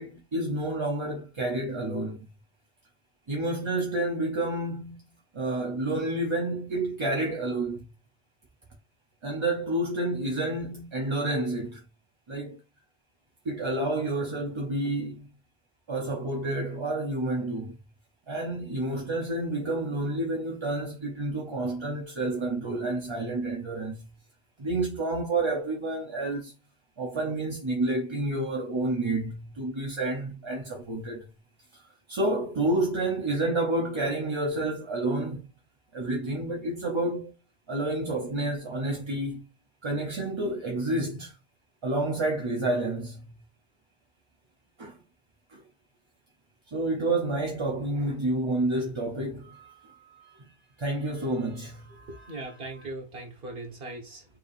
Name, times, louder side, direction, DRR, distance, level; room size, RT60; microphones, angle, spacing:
voice 1, 0.0-2.3 3.3-5.0 5.3-7.9 9.2-11.8 12.3-12.6 13.4-15.3 15.9-17.8 18.3-24.1 24.6-26.5 27.0-31.3 31.7-31.8 32.1-35.4 35.9-37.3 37.7-39.4 39.8-41.4 41.8-43.3 44.8-45.0 45.5-45.6 46.7-50.5 50.8-52.9, right 2 dB, 35° right, 0.6 m, -29 dB
voice 2, 52.1-54.3, right 2 dB, 70° right, 1.5 m, -39 dB
4.5 x 3.3 x 2.4 m
omnidirectional pair, 1.0 m